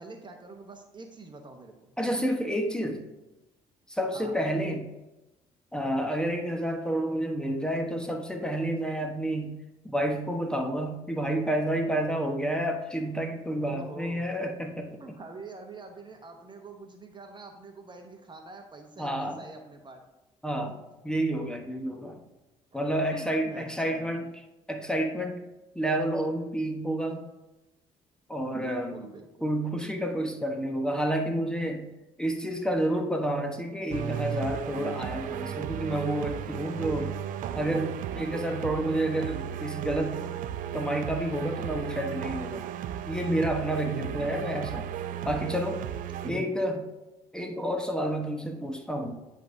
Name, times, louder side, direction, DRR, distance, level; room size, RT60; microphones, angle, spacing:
voice 1, 0.0-1.7 4.1-4.3 13.7-14.3 15.0-20.0 20.6-20.7 23.1-24.2 28.5-29.3 43.8-44.4 46.2-46.7, right 3 dB, 30° right, 4 dB, 1.0 m, -44 dB
voice 2, 2.0-3.0 3.9-4.9 5.7-9.6 9.8-15.2 19.0-19.4 20.4-20.8 21.0-22.2 22.7-24.2 24.7-25.4 25.7-27.2 28.3-29.0 29.4-31.9 32.2-37.2 37.6-40.2 40.7-42.6 43.1-44.9 45.2-45.8 46.3-46.8 47.3-49.1, right 1 dB, 5° left, 3 dB, 1.0 m, -29 dB
sound 1, 33.9-46.3, right 9 dB, 65° right, 0.4 m, -35 dB
10.0 x 3.6 x 2.7 m, 1.0 s
hypercardioid pair, 55°, 15 cm